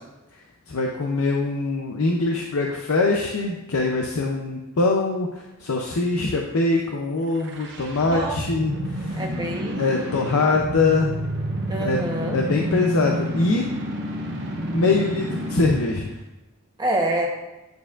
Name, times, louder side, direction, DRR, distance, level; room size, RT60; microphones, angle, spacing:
voice 1, 0.7-9.2 9.8-11.2 11.8-12.0 12.3-13.7 14.7-16.2, left 3 dB, 80° left, 1 dB, 0.6 m, -23 dB
sound 1, 7.3-15.9, equal, 60° right, 0.8 m, -29 dB
voice 2, 9.1-9.8 11.7-12.4 16.8-17.3, right 1 dB, 20° right, -1 dB, 1.0 m, -26 dB
9.4 x 4.4 x 2.5 m, 1.0 s
head